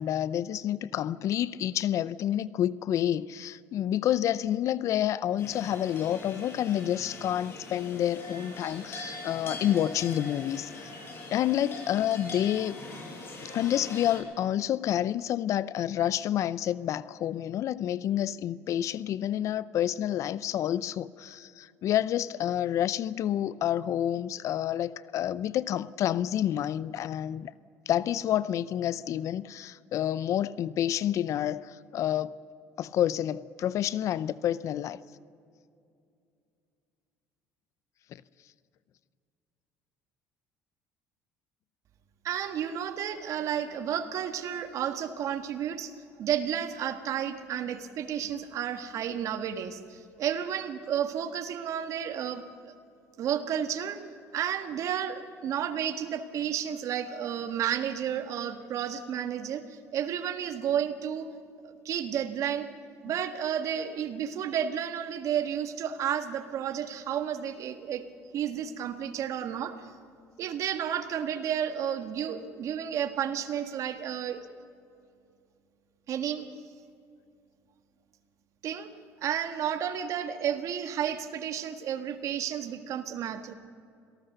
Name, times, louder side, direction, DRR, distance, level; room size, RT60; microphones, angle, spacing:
voice 1, 0.0-10.9 11.3-12.8 13.4-27.5 27.9-32.4 32.8-35.0 38.1-38.2, left 11 dB, 60° left, 0.6 m, -29 dB
sound 1, 5.4-14.2, left 2 dB, 40° left, 7.8 m, -42 dB
voice 2, 42.2-45.9 46.2-52.7 53.2-54.0 54.3-61.3 61.6-62.7 63.0-68.0 68.3-69.9 70.4-74.4 76.1-76.5 78.6-78.9 79.2-83.5, right 9 dB, 60° right, 1.7 m, -32 dB
26.0 x 18.5 x 6.8 m
supercardioid pair, 85°, 6 cm